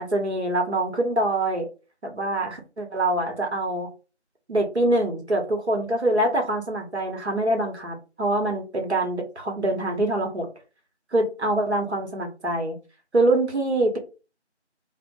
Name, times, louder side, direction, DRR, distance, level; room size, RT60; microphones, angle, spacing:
voice 1, 0.0-1.7 2.0-3.9 4.5-10.5 11.1-12.8 13.1-14.0, right 1 dB, 70° right, 1 dB, 0.9 m, -24 dB
2.6 x 2.1 x 2.7 m, 0.32 s
figure-of-eight pair, 175°, 35 cm